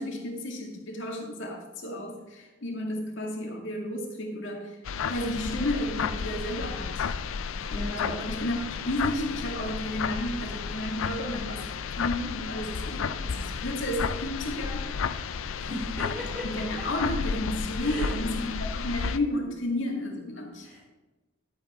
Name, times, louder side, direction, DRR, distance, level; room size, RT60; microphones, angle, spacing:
voice 1, 0.0-4.8 5.1-7.0 7.7-14.9 16.4-20.7, left 1 dB, 65° left, 1 dB, 2.1 m, -32 dB
sound 1, 4.9-19.2, left 6 dB, 85° left, 0.5 m, -32 dB
voice 2, 7.7-8.1 15.5-16.6 17.8-18.2 20.6-20.8, equal, 25° right, -10 dB, 3.5 m, -37 dB
12.0 x 8.7 x 3.6 m, 1.1 s
head